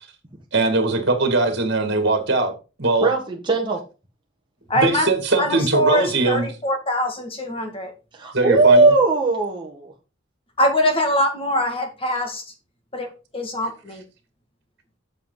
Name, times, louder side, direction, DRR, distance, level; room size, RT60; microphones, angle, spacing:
voice 1, 0.5-2.5 2.8-3.1 4.8-6.5 8.3-8.9, right 3 dB, 55° right, 2.3 m, -20 dB
voice 2, 3.0-3.8 8.1-9.9, right 3 dB, 25° right, 1.6 m, -18 dB
voice 3, 4.7-5.1 5.4-7.9 10.6-12.5 12.9-14.0, equal, 25° left, 2.0 m, -23 dB
8.3 x 7.3 x 3.9 m
head